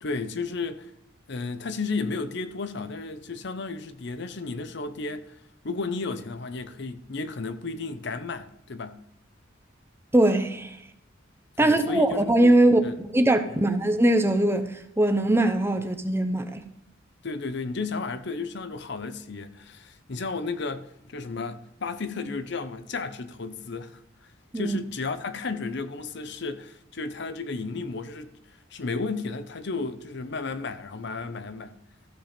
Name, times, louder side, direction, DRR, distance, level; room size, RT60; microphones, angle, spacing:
voice 1, 0.0-0.9 1.3-5.4 5.6-9.0 11.6-12.3 12.8-13.0 13.5-13.7 17.2-24.0 24.5-28.3 28.7-31.7, left 4 dB, 60° left, 0.7 m, -33 dB
voice 2, 10.1-10.8 11.6-16.6 24.5-24.8, right 1 dB, 10° right, 0.8 m, -21 dB
14.5 x 6.9 x 4.4 m
head